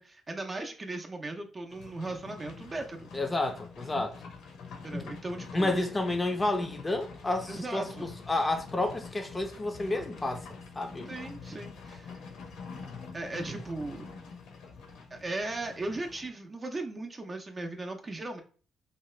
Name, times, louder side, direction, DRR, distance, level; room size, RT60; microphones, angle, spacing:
voice 1, 0.0-3.1 4.8-5.8 7.5-8.1 11.0-12.2 13.1-14.1 15.1-18.4, right 2 dB, 30° right, 0.6 m, -37 dB
Livestock farm animals working animals, 1.7-16.3, left 4 dB, 85° left, 0.8 m, -45 dB
voice 2, 3.1-4.2 4.9-5.0 5.5-10.5 10.8-11.1, left 2 dB, 20° left, 0.5 m, -30 dB
2.8 x 2.3 x 3.2 m
cardioid pair, 90°, 0 cm